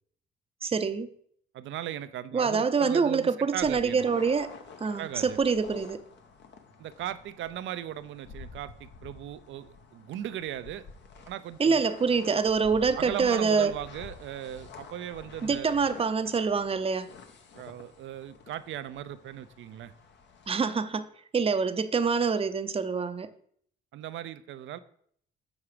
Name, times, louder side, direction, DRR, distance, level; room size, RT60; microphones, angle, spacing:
voice 1, 0.6-1.1 2.3-4.5 4.8-6.0 11.6-13.7 15.4-17.1 20.5-23.3, right 5 dB, 30° right, 0.6 m, -26 dB
voice 2, 1.5-4.0 5.0-5.4 6.8-10.9 11.3-11.8 12.9-15.8 17.5-19.9 23.9-24.8, right 11 dB, 70° right, 0.5 m, -38 dB
sound 1, 3.5-20.5, left 5 dB, 65° left, 1.0 m, -49 dB
7.2 x 4.7 x 4.9 m
cardioid pair, 90°, 20 cm